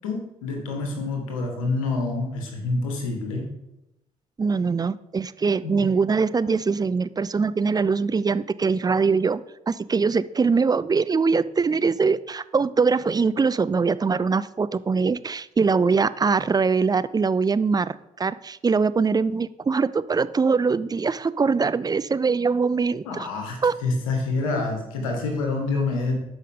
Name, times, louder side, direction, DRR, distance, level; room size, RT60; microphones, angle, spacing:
voice 1, 0.0-3.4 5.6-5.9 23.0-26.2, left 3 dB, 90° left, 2 dB, 1.6 m, -27 dB
voice 2, 4.4-9.4 9.7-23.3 23.6-23.7, right 5 dB, 25° right, 16 dB, 0.4 m, -22 dB
13.0 x 5.5 x 3.7 m, 0.90 s
hypercardioid pair, 50°, 17 cm